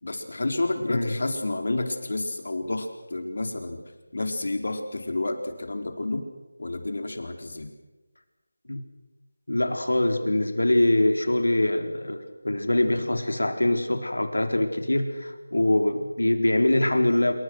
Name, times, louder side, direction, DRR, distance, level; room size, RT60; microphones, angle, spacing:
voice 1, 0.0-3.8 4.1-6.2 6.6-7.7, left 2 dB, 60° left, 5 dB, 4.3 m, -30 dB
voice 2, 9.5-17.3, left 1 dB, 85° left, 6 dB, 4.1 m, -23 dB
27.0 x 23.5 x 6.4 m, 1.1 s
figure-of-eight pair, 170°, 0 cm